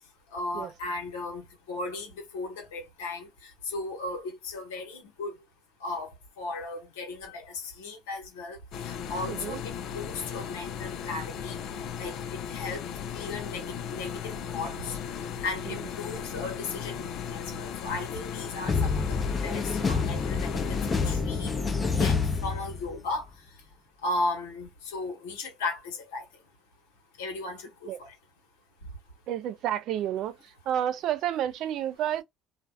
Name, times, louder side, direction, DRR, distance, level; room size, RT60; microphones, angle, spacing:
voice 1, 0.3-5.3 5.8-6.1 6.4-8.6 8.8-11.6 12.0-12.2 12.5-12.8 13.1-15.0 15.4-20.8 21.0-21.5 21.8-23.2 24.0-26.2 27.2-28.1, left 2 dB, 90° left, 1.1 m, -36 dB
sound 1, 8.7-21.2, left 8 dB, 65° left, 0.4 m, -36 dB
voice 2, 9.3-9.6 15.7-15.8 27.9-28.0 29.3-30.4 30.7-32.2, right 11 dB, 65° right, 0.4 m, -30 dB
sound 2, 18.7-23.2, left 4 dB, 30° left, 0.7 m, -28 dB
2.5 x 2.3 x 2.3 m
supercardioid pair, 75°, 0 cm